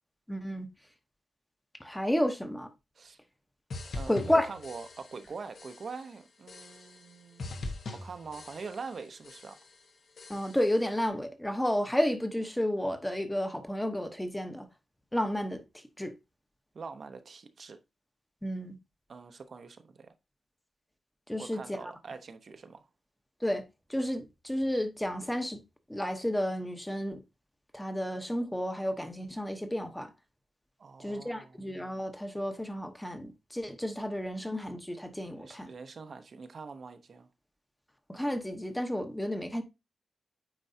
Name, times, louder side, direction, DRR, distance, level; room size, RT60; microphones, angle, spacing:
voice 1, 0.3-0.7 1.8-2.7 4.1-4.5 10.3-14.7 15.1-16.1 18.4-18.8 21.3-21.8 23.4-23.6 23.9-25.6 25.9-27.2 27.7-30.1 31.0-35.7 38.1-39.6, equal, 5° left, 0.9 m, -31 dB
sound 1, 3.7-5.3 5.6-6.1 6.5-7.1 7.4-9.0 9.2-9.8 10.2-10.8, left 2 dB, 60° left, 1.2 m, -42 dB
voice 2, 3.9-9.6 16.7-17.8 19.1-20.1 21.4-22.9 30.8-31.6 35.3-37.3, right 4 dB, 50° right, 0.7 m, -44 dB
8.9 x 4.5 x 2.7 m
wide cardioid pair, 120°, 0 cm